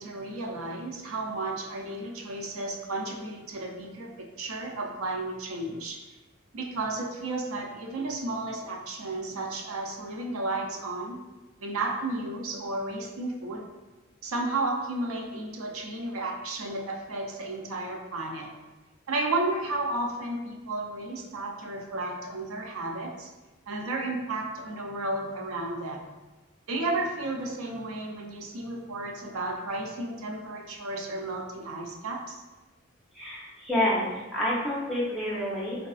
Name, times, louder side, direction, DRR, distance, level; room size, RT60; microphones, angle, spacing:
voice 1, 0.0-6.0 6.5-11.2 11.6-13.7 14.2-18.5 19.1-23.3 23.7-26.0 26.7-32.4, right 2 dB, 90° right, 1 dB, 0.5 m, -33 dB
voice 2, 33.1-35.9, left 1 dB, ahead, -8 dB, 0.6 m, -28 dB
3.5 x 2.3 x 2.3 m, 1.1 s
head